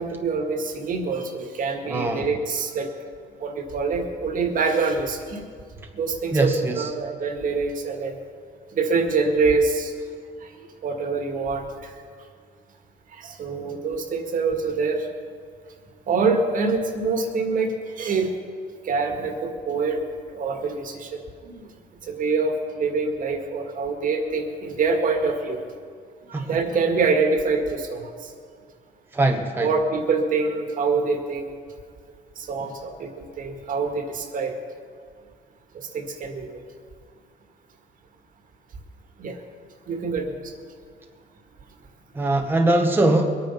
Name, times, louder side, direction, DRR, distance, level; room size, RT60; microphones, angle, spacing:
voice 1, 0.0-2.9 3.4-5.4 5.9-8.2 8.7-9.9 10.4-10.5 10.8-11.9 13.1-15.1 16.1-18.4 18.8-20.0 20.3-21.7 22.0-25.6 26.3-28.3 29.6-31.5 32.4-34.6 35.7-36.6 39.2-39.4 39.9-40.3, right 4 dB, 55° right, 5 dB, 1.9 m, -25 dB
voice 2, 1.9-2.3 6.3-6.9 26.3-26.6 29.1-29.7 42.1-43.4, right 2 dB, 15° right, 3 dB, 1.1 m, -22 dB
21.5 x 9.2 x 5.7 m, 2.1 s
cardioid pair, 110°, 17 cm